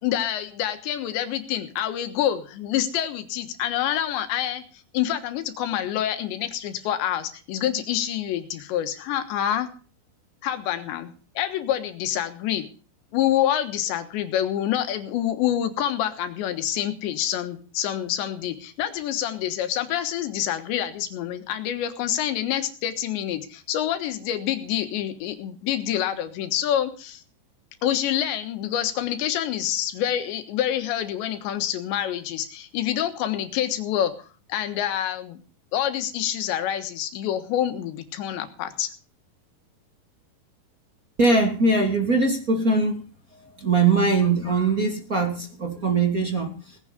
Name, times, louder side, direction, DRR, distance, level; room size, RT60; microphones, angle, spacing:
voice 1, 0.0-4.6 4.9-9.7 10.4-12.6 13.1-27.2 27.8-35.4 35.7-38.9, left 11 dB, 75° left, 8 dB, 3.6 m, -27 dB
voice 2, 41.2-43.0 43.3-46.8, right 3 dB, 25° right, 2 dB, 1.9 m, -22 dB
18.5 x 10.5 x 5.2 m, 0.38 s
omnidirectional pair, 5.3 m